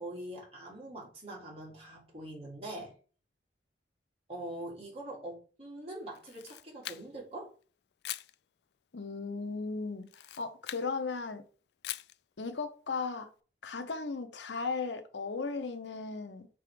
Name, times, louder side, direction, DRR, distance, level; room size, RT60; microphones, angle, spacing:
voice 1, 0.0-2.9 4.3-7.5, right 1 dB, 35° right, 2.9 m, -43 dB
Camera, 6.1-7.3 8.0-8.3 10.0-10.9 11.8-12.2, left 14 dB, 65° left, 0.3 m, -42 dB
voice 2, 8.9-11.4 12.4-13.3 13.6-16.5, left 4 dB, 85° left, 0.8 m, -36 dB
6.0 x 3.6 x 5.0 m
head